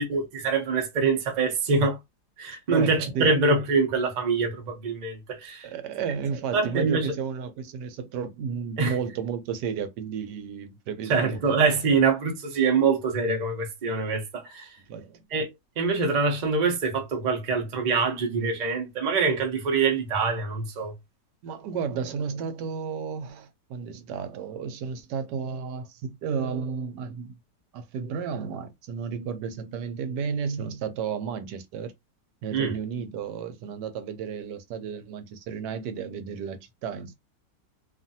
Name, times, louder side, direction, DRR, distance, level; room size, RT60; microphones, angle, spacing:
voice 1, 0.0-2.0 2.4-5.7 6.5-7.1 8.8-8.9 11.1-14.7 15.3-15.5 15.8-20.9 32.5-32.7, right 4 dB, 45° right, 0.6 m, -24 dB
voice 2, 2.7-3.3 5.6-11.6 14.9-15.2 21.4-27.4 27.7-31.9 32.4-37.1, right 6 dB, 80° right, 1.2 m, -33 dB
2.9 x 2.4 x 2.6 m
omnidirectional pair, 1.8 m